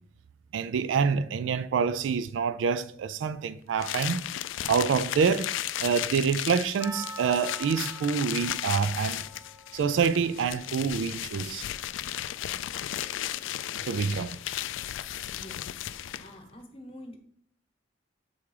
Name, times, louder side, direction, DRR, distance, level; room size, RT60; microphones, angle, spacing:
voice 1, 0.5-4.2 4.7-5.5 5.8-9.2 9.7-11.7 13.9-14.4, right 6 dB, 80° right, 0.3 m, -26 dB
sound 1, 3.8-16.4, left 12 dB, 85° left, 0.3 m, -35 dB
Percussion, 6.8-11.8, right 1 dB, 15° right, 0.9 m, -46 dB
voice 2, 15.1-15.7 16.2-17.2, left 1 dB, 30° left, 1.0 m, -47 dB
7.0 x 3.6 x 4.8 m
head